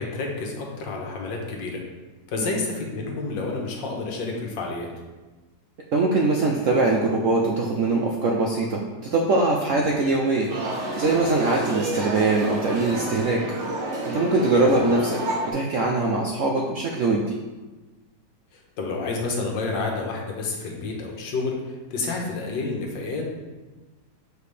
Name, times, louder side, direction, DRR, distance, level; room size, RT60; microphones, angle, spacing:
voice 1, 0.0-1.8 2.3-4.9 14.5-14.7 18.5-23.2, left 3 dB, 80° left, 0 dB, 1.7 m, -29 dB
voice 2, 5.9-13.4 14.1-15.2 15.5-17.3, right 3 dB, 70° right, -1 dB, 0.7 m, -22 dB
sound 1, 10.5-15.5, right 1 dB, 45° right, 1.3 m, -30 dB
6.9 x 4.7 x 3.3 m, 1.2 s
omnidirectional pair, 2.0 m